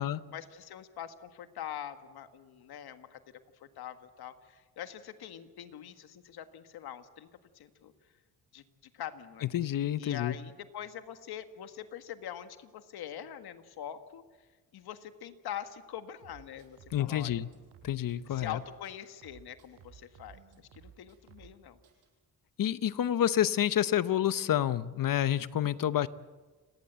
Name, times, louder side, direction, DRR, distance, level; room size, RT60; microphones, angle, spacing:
voice 1, 0.3-3.2 3.6-7.3 7.5-7.9 8.5-9.5 10.0-14.2 14.7-17.4 18.3-21.8, left 10 dB, 85° left, 9 dB, 1.7 m, -44 dB
voice 2, 9.5-10.3 16.9-17.5 17.8-18.6 22.6-26.1, left 11 dB, 60° left, 15 dB, 0.9 m, -28 dB
sound 1, 16.2-18.6 18.8-21.6 21.8-22.1, right 8 dB, 90° right, 5.5 m, -56 dB
29.5 x 18.5 x 8.1 m, 1.4 s
cardioid pair, 90°, 37 cm